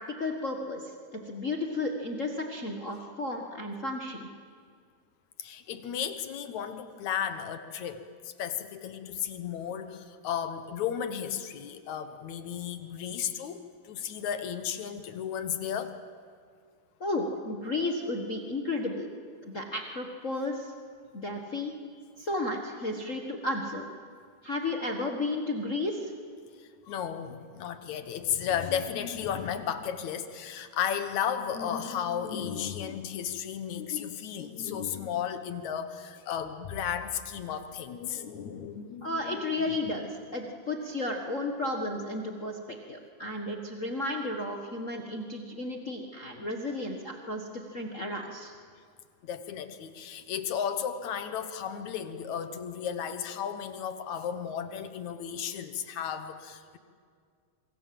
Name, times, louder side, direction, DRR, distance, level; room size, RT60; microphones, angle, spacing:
voice 1, 0.0-4.3 17.0-19.1 19.4-20.7 21.1-21.7 22.2-23.8 24.4-26.1 39.0-48.5, left 2 dB, 35° left, 2 dB, 1.3 m, -33 dB
voice 2, 5.4-15.9 22.9-23.0 26.6-39.9 49.2-56.8, left 8 dB, 70° left, 9 dB, 2.5 m, -34 dB
27.0 x 24.0 x 7.7 m, 2.1 s
omnidirectional pair, 3.5 m